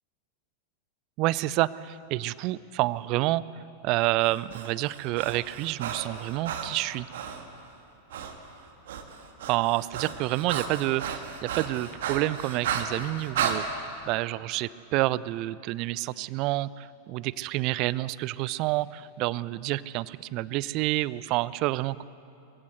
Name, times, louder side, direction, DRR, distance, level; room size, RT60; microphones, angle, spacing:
voice 1, 1.2-3.4 3.8-7.1 9.5-13.6 14.1-22.0, right 17 dB, 40° right, 20 dB, 0.4 m, -28 dB
Breathing, 4.2-7.4 8.1-8.3 8.6-13.6, right 7 dB, 55° right, 1.7 m, -34 dB
22.0 x 16.0 x 8.1 m, 2.8 s
figure-of-eight pair, 90°, 0 cm